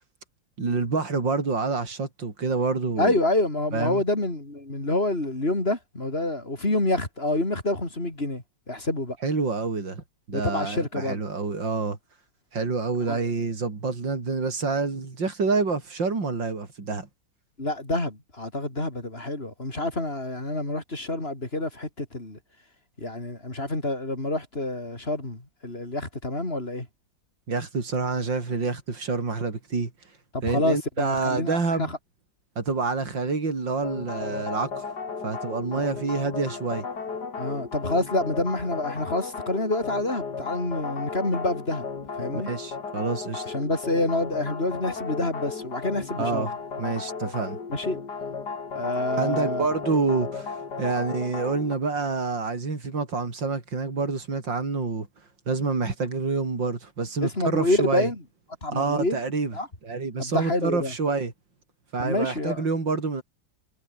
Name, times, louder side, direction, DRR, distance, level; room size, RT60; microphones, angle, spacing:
voice 1, 0.6-3.1 3.7-4.0 9.2-12.0 12.5-17.1 27.5-29.9 30.4-31.9 32.6-34.9 35.2-36.8 42.3-43.5 46.2-46.5 46.8-47.6 49.1-55.1 55.5-58.1 58.7-59.5 59.8-61.3 61.9-63.2, right 4 dB, 85° right, 4.7 m, -27 dB
voice 2, 3.0-9.2 10.3-11.2 13.1-13.2 17.6-22.4 23.0-26.9 30.3-32.0 37.4-41.8 42.2-42.5 43.5-46.5 47.7-48.0 48.7-49.7 57.2-58.2 58.6-59.2 59.5-59.7 60.2-60.9 62.0-62.6, left 2 dB, 30° left, 5.2 m, -27 dB
sound 1, 33.8-51.7, left 5 dB, 65° left, 3.2 m, -35 dB
omnidirectional pair, 2.0 m